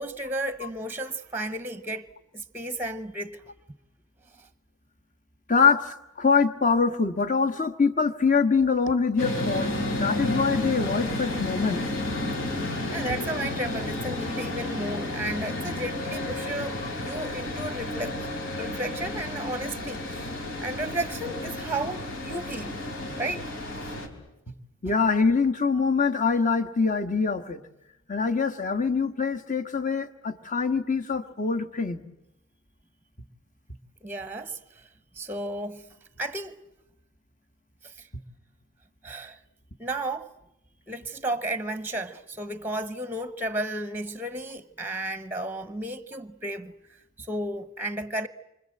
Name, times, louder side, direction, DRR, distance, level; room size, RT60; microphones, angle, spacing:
voice 1, 0.0-2.1 2.3-3.4 4.4-4.5 12.6-18.3 18.6-20.3 20.6-22.8 23.2-23.4 23.7-24.0 34.0-34.8 35.2-35.9 36.2-36.6 37.8-38.1 39.0-39.4 39.8-40.3 40.9-46.7 47.2-48.3, right 1 dB, 10° right, 0.9 m, -33 dB
voice 2, 5.5-11.8 24.8-27.6 28.1-32.0, left 5 dB, 40° left, 1.5 m, -24 dB
sound 1, 9.2-24.1, left 1 dB, 70° left, 4.0 m, -31 dB
28.5 x 25.0 x 7.8 m
head